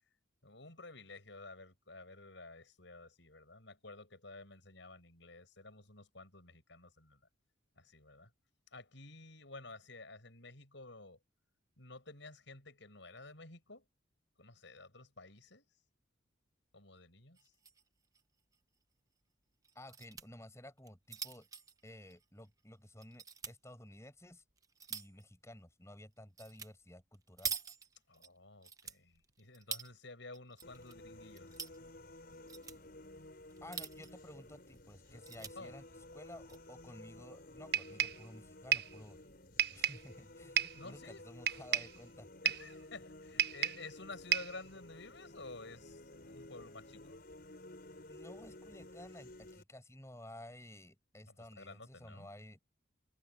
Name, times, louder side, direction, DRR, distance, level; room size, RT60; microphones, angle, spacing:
voice 1, 0.4-7.2 7.8-8.3 8.7-11.2 11.8-13.8 14.4-15.7 16.7-17.5 28.1-31.7 35.5-35.7 40.7-41.5 42.4-47.2 51.3-52.3, left 3 dB, 65° left, 6.7 m, -52 dB
sound 1, 17.4-17.8 18.1-18.2 18.5-18.6 19.6-20.3 20.8-22.6 23.0-23.6 24.2-25.2 26.4-26.7 27.0-28.3 28.6-29.9 30.3-30.9 31.2-31.8 32.3-32.8 33.5-34.2 34.7-34.8 35.0-35.5 36.3-36.6, right 6 dB, 15° right, 0.8 m, -45 dB
voice 2, 19.7-21.5 21.8-24.4 24.9-27.5 33.6-35.8 36.1-39.2 39.7-42.3 48.1-52.6, left 1 dB, 15° left, 6.1 m, -53 dB
sound 2, 30.6-49.6, left 1 dB, 50° left, 5.1 m, -54 dB
sound 3, 37.7-38.3 38.7-39.0 39.6-40.1 40.6-40.8 41.5-42.0 42.5-42.7 43.4-43.9 44.3-44.6, right 10 dB, 50° right, 1.1 m, -32 dB
head